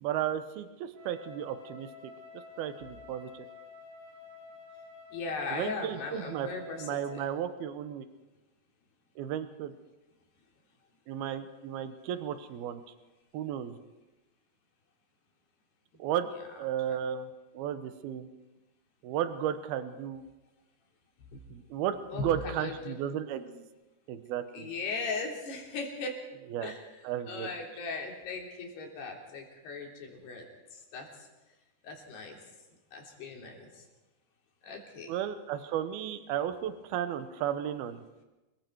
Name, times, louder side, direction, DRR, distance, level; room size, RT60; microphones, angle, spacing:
voice 1, 0.0-1.9 2.3-3.5 5.5-6.5 6.8-8.1 9.2-9.8 11.1-12.8 13.3-13.8 16.0-16.3 16.5-17.3 17.5-18.3 19.0-20.2 21.5-23.6 24.1-24.7 26.5-26.7 27.0-27.5 35.1-38.0, right 10 dB, 70° right, 10 dB, 2.9 m, -34 dB
Wind instrument woodwind instrument, 0.9-7.4, left 4 dB, 55° right, 8.0 m, -50 dB
voice 2, 5.1-7.2 16.9-17.0 22.1-23.0 24.5-26.2 26.6-26.8 27.3-30.5 30.7-31.1 31.8-32.4 32.9-33.8 34.6-35.2, left 3 dB, 75° left, 0 dB, 5.4 m, -38 dB
28.5 x 21.5 x 4.7 m, 1.0 s
omnidirectional pair, 4.8 m